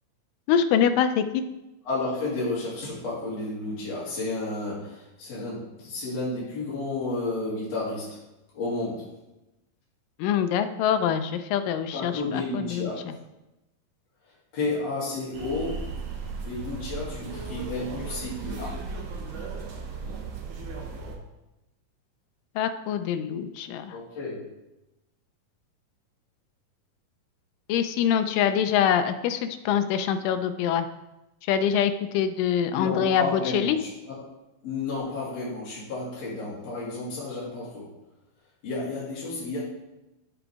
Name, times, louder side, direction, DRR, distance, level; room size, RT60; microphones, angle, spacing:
voice 1, 0.5-1.4 10.2-12.9 22.6-24.0 27.7-30.9 31.5-33.8, left 8 dB, 85° left, 9 dB, 2.2 m, -24 dB
voice 2, 1.8-8.2 8.5-9.1 11.9-13.0 14.5-15.9 16.4-18.8 23.9-24.5 32.7-34.3 34.6-37.9 38.6-39.6, left 3 dB, 50° left, -9 dB, 3.4 m, -32 dB
sound 1, 15.3-21.2, right 4 dB, 80° right, 1.1 m, -36 dB
13.0 x 5.0 x 3.5 m, 0.97 s
omnidirectional pair, 3.9 m